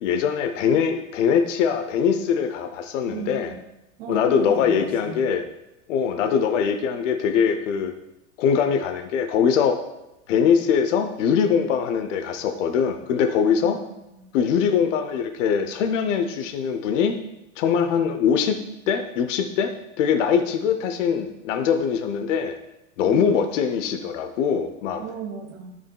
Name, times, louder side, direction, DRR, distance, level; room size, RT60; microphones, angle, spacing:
voice 1, 0.0-3.5 4.1-5.4 5.9-8.0 8.4-9.8 10.3-13.8 14.3-17.2 17.6-18.6 18.9-22.6 23.0-25.0, left 7 dB, 80° left, 7 dB, 0.7 m, -22 dB
voice 2, 3.1-3.6 4.0-5.2 13.6-14.3 23.0-23.5 25.0-25.7, right 6 dB, 75° right, -3 dB, 2.0 m, -36 dB
12.5 x 5.4 x 2.2 m, 0.92 s
supercardioid pair, 150°, 37 cm